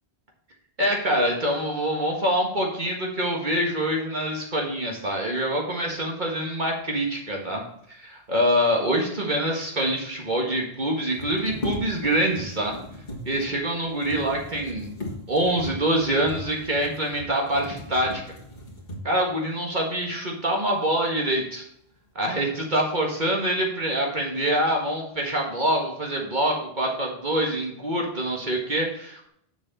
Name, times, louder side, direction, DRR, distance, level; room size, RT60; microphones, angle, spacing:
voice 1, 0.8-7.6 7.9-12.8 13.3-14.9 15.3-18.2 19.0-21.6 22.2-29.3, right 1 dB, 45° right, 0 dB, 1.8 m, -25 dB
sound 1, 9.5-9.6 9.8-9.9 10.9-19.3 20.0-20.1 20.6-21.2 21.5-22.1, left 2 dB, 45° left, 2.0 m, -38 dB
7.1 x 7.0 x 4.1 m, 0.69 s
omnidirectional pair, 1.1 m